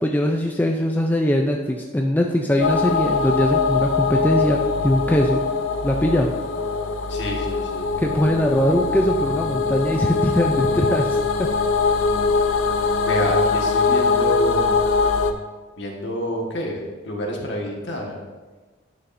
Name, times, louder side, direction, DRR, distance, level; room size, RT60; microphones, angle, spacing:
voice 1, 0.0-5.4 5.8-6.3 8.0-11.1 11.4-11.5, equal, 10° left, 1 dB, 0.4 m, -21 dB
sound 1, 2.6-15.3, left 4 dB, 85° left, 0.6 m, -22 dB
voice 2, 7.1-8.0 12.4-12.5 13.0-14.8 15.8-18.2, equal, 60° left, -1 dB, 1.5 m, -28 dB
11.0 x 7.0 x 2.6 m, 1.3 s
head